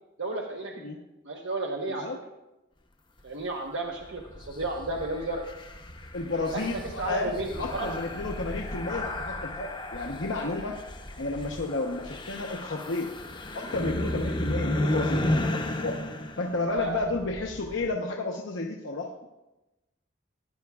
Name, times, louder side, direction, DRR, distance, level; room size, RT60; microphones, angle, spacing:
voice 1, 0.2-1.0 1.2-2.1 3.2-5.4 6.5-7.9 16.7-17.0, right 2 dB, 75° right, -1 dB, 1.0 m, -33 dB
sound 1, 4.0-17.9, left 1 dB, 25° left, 0.7 m, -34 dB
voice 2, 6.1-10.8 11.2-13.1 13.5-16.0 16.4-19.1, left 2 dB, 80° left, 1 dB, 0.8 m, -32 dB
15.0 x 10.5 x 2.3 m, 0.99 s
head